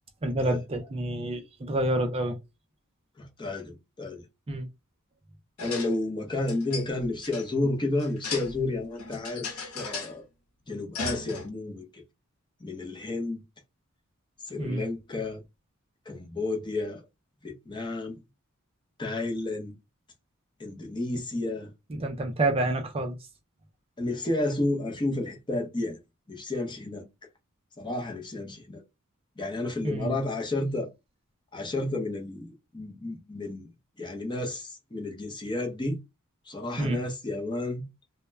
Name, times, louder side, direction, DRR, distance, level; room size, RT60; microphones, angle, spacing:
voice 1, 0.2-2.4 4.5-4.7 14.6-14.8 21.9-23.2 29.8-30.2 36.8-37.0, right 1 dB, 25° right, 0.4 m, -28 dB
voice 2, 3.2-4.2 5.6-10.3 10.7-12.0 12.6-13.4 14.5-15.4 16.1-17.0 17.4-18.2 19.0-19.7 20.6-21.7 24.0-26.0 26.3-27.1 27.8-28.8 29.4-30.9 31.5-33.7 34.0-36.0 36.5-37.9, left 2 dB, 20° left, 0.6 m, -31 dB
sound 1, 5.6-5.9 6.3-7.5 8.0-8.7 9.0-10.1 10.9-11.5, left 4 dB, 75° left, 0.8 m, -36 dB
2.1 x 2.1 x 3.3 m
head